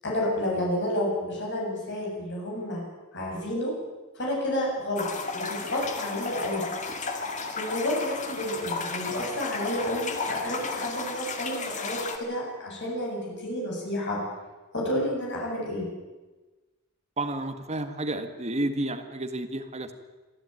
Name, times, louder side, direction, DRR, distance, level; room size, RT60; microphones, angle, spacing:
voice 1, 0.0-2.8 3.1-3.7 4.1-5.1 5.3-6.6 7.6-14.2 14.7-15.9, left 1 dB, 55° left, -3 dB, 7.9 m, -30 dB
sound 1, 5.0-12.2, left 4 dB, 35° left, 2.0 m, -33 dB
voice 2, 17.2-19.9, right 1 dB, 30° right, 7 dB, 1.7 m, -31 dB
23.0 x 13.5 x 9.1 m, 1.2 s
head